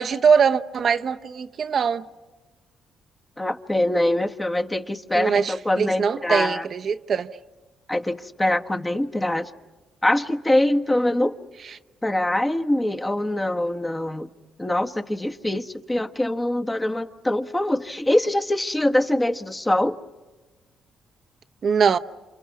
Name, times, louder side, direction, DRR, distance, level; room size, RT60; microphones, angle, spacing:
voice 1, 0.0-2.0 5.1-7.4 21.6-22.0, right 6 dB, 50° right, 0.9 m, -22 dB
voice 2, 3.4-6.6 7.9-9.5 10.0-11.4 12.0-14.3 14.6-20.0, left 1 dB, 15° left, 1.3 m, -23 dB
29.0 x 27.5 x 6.0 m
cardioid pair, 90°, 0 cm